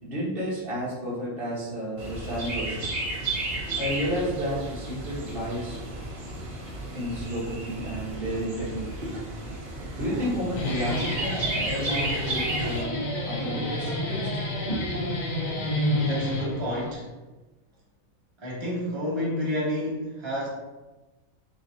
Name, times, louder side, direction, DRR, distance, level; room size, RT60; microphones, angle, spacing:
voice 1, 0.0-3.0 3.8-5.8 6.9-8.9 9.9-14.4 14.7-15.0, equal, 45° right, -7 dB, 1.4 m, -31 dB
Chirp tweet, 2.0-12.8, right 2 dB, 75° right, 1.5 m, -33 dB
Guitar, 10.3-16.9, left 1 dB, 45° left, 0.6 m, -30 dB
voice 2, 15.9-17.1 18.4-20.5, left 1 dB, 25° right, -5 dB, 0.6 m, -30 dB
4.7 x 3.0 x 2.7 m, 1.1 s
omnidirectional pair, 1.4 m